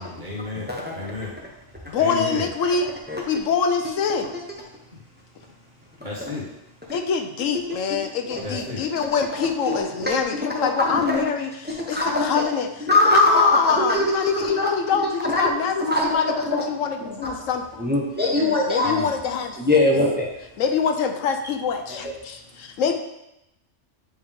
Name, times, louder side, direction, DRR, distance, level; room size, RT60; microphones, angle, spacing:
voice 1, 0.0-1.4 2.0-2.4 6.0-6.5 8.4-8.8 18.8-19.1, left 2 dB, 40° right, -5 dB, 1.7 m, -32 dB
voice 2, 0.5-1.1 3.1-3.2 6.9-7.0 9.4-10.4 10.8-11.2 11.9-12.4 12.9-14.0 14.3-15.4 15.8-16.6 17.0-17.3 17.8-18.9 19.6-20.2, left 1 dB, 10° right, -2 dB, 0.8 m, -22 dB
voice 3, 1.9-2.9 3.3-4.3 6.9-17.8 18.7-19.8 20.6-22.9, left 6 dB, 80° left, 5 dB, 1.1 m, -24 dB
9.3 x 3.5 x 3.5 m, 0.87 s
omnidirectional pair, 1.3 m